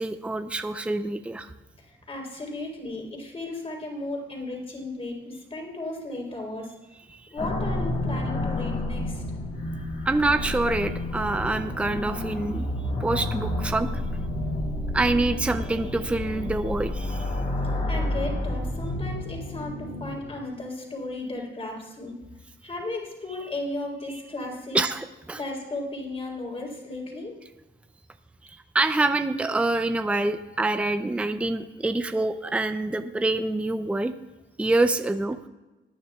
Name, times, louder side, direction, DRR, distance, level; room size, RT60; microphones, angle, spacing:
voice 1, 0.0-1.5 7.1-7.2 10.1-12.7 13.0-13.9 14.9-17.3 24.7-25.4 28.7-34.1 34.6-35.4, right 2 dB, 5° right, 9 dB, 0.5 m, -26 dB
voice 2, 1.8-6.7 7.3-9.2 17.9-22.1 22.6-24.8 25.3-27.3, left 2 dB, 30° left, 0 dB, 3.8 m, -35 dB
sound 1, 7.4-20.4, left 1 dB, 45° left, 3.8 m, -30 dB
19.5 x 9.9 x 2.4 m, 1.1 s
cardioid pair, 90°, 20 cm